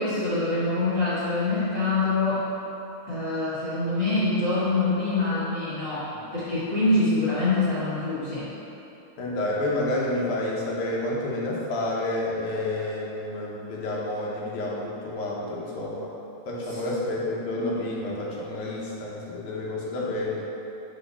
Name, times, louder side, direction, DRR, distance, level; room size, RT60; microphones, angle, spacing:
voice 1, 0.0-2.5 3.1-6.1 6.3-8.5 16.7-16.8, left 2 dB, 55° left, -13 dB, 0.6 m, -25 dB
voice 2, 9.2-16.1 16.5-20.4, left 1 dB, 85° left, -4 dB, 2.3 m, -29 dB
6.3 x 3.1 x 5.5 m, 2.9 s
omnidirectional pair, 3.3 m